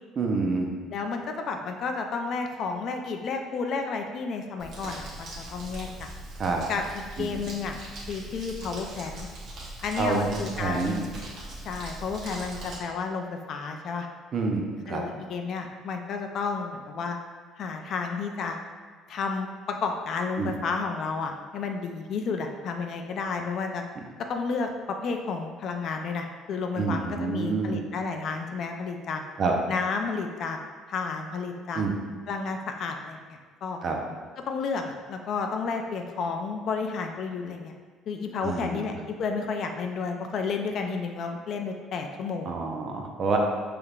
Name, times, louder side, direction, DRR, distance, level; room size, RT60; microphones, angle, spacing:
voice 1, 0.2-0.7 6.4-6.6 7.2-7.4 10.0-11.0 14.3-15.0 20.4-20.6 26.7-27.8 29.4-29.5 31.7-31.9 33.8-34.0 38.4-38.9 42.5-43.4, right 4 dB, 35° right, 1 dB, 0.5 m, -28 dB
voice 2, 0.9-6.1 6.7-6.8 7.2-7.8 8.1-9.3 9.8-11.1 11.6-14.1 14.9-17.2 17.6-18.6 19.1-23.8 24.3-29.2 29.7-30.6 30.9-31.8 32.3-33.8 34.5-37.7 38.1-42.5, left 4 dB, 45° left, 4 dB, 0.4 m, -31 dB
Crumpling crinkling, 4.6-12.8, right 1 dB, 50° right, 1.1 m, -41 dB
5.5 x 3.3 x 2.4 m, 1.5 s
cardioid pair, 155°, 0 cm